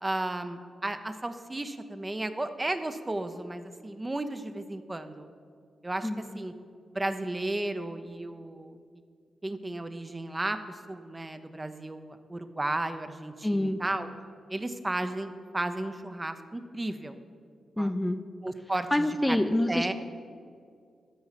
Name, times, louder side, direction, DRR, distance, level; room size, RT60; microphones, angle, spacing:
voice 1, 0.0-5.3 5.8-6.5 6.9-8.8 9.4-14.1 14.5-17.2 17.8-17.9 18.4-19.4 19.7-19.9, right 2 dB, 25° right, 9 dB, 0.7 m, -34 dB
voice 2, 13.4-13.8 17.8-18.2 18.9-19.9, left 1 dB, 10° left, 8 dB, 0.5 m, -26 dB
12.5 x 4.7 x 5.7 m, 2.2 s
supercardioid pair, 50°, 0 cm